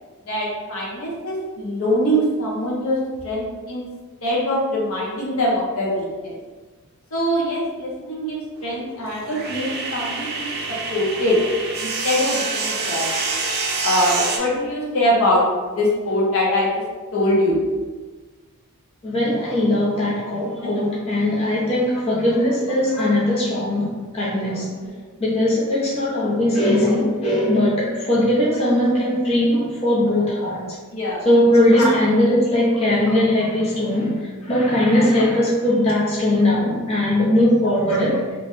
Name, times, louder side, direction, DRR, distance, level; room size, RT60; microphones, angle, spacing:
voice 1, 0.3-3.0 3.2-3.8 4.2-6.3 7.1-10.5 10.9-11.4 11.8-13.1 13.8-15.4 15.7-16.7 17.1-17.6 20.6-20.8 24.9-25.1 26.8-26.9 30.9-31.2 31.5-31.9 33.1-33.2 37.2-37.3, equal, 65° left, -4 dB, 0.7 m, -23 dB
sound 1, 8.6-14.4, right 4 dB, 45° right, 0.4 m, -27 dB
voice 2, 19.0-24.7 25.2-30.8 31.2-38.3, left 1 dB, 25° left, -8 dB, 0.6 m, -19 dB
2.9 x 2.1 x 3.0 m, 1.4 s
head